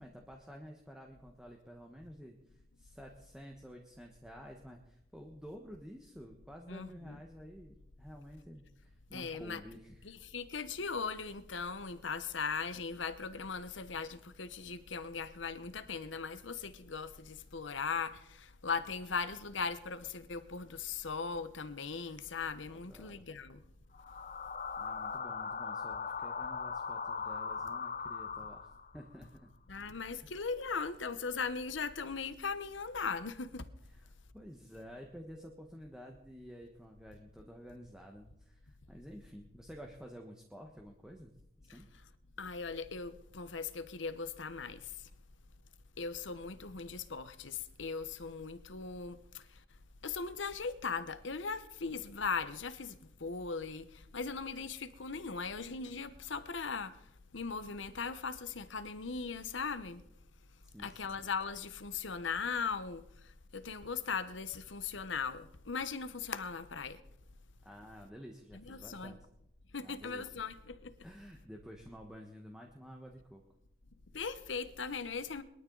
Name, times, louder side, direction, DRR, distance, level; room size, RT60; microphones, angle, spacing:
voice 1, 0.0-10.2 22.7-23.2 24.8-29.5 30.2-30.3 33.9-41.4 41.6-41.9 60.6-61.2 67.6-69.2 69.8-70.3 71.0-73.4, equal, 5° right, 1.3 m, -51 dB
voice 2, 6.7-7.2 9.1-9.6 10.0-23.6 29.7-33.7 42.4-45.0 46.0-49.6 50.0-57.0 57.3-60.0 60.8-67.0 68.5-69.1 69.7-70.9 74.1-75.4, left 5 dB, 80° left, 1.0 m, -39 dB
sound 1, 23.9-29.0, left 5 dB, 40° left, 0.6 m, -39 dB
22.0 x 12.5 x 4.0 m
head